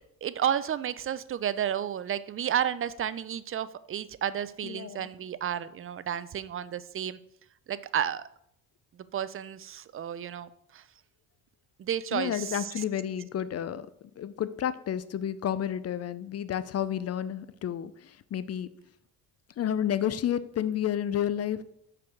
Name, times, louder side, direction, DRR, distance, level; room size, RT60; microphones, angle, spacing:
voice 1, 0.2-7.2 7.7-8.2 9.1-10.8 11.8-12.8, right 9 dB, 35° right, 16 dB, 0.5 m, -32 dB
voice 2, 4.6-5.1 12.1-13.9 14.2-18.7 19.6-21.6, left 10 dB, 40° left, 14 dB, 0.5 m, -31 dB
5.8 x 4.7 x 6.4 m, 0.74 s
cardioid pair, 95°, 39 cm